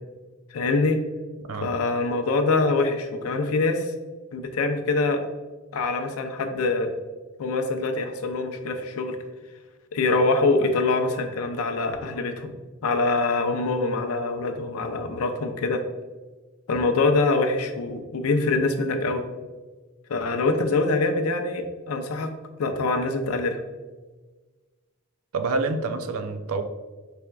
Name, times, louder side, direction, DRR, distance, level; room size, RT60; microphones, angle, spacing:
voice 1, 0.5-1.0 1.6-3.9 4.3-5.2 5.7-6.9 7.4-9.2 9.9-12.5 12.8-15.8 16.7-19.2 20.1-22.3 22.6-23.6, left 3 dB, 75° left, 6 dB, 0.5 m, -24 dB
voice 2, 25.3-26.6, right 3 dB, 75° right, 7 dB, 0.4 m, -27 dB
4.4 x 3.4 x 2.3 m, 1.3 s
head